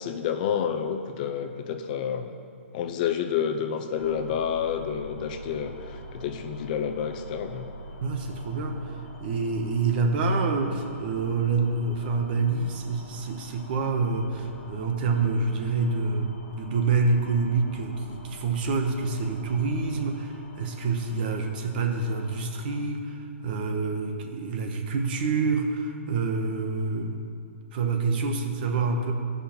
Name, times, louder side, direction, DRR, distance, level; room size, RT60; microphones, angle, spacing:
voice 1, 0.0-2.3 2.7-7.7, left 8 dB, 40° left, 7 dB, 0.6 m, -29 dB
sound 1, 4.0-22.8, equal, 75° left, 1.3 m, -45 dB
voice 2, 8.0-27.1 27.7-29.1, right 4 dB, 45° right, 4 dB, 1.1 m, -27 dB
13.5 x 5.4 x 4.4 m, 2.4 s
hypercardioid pair, 150°, 7 cm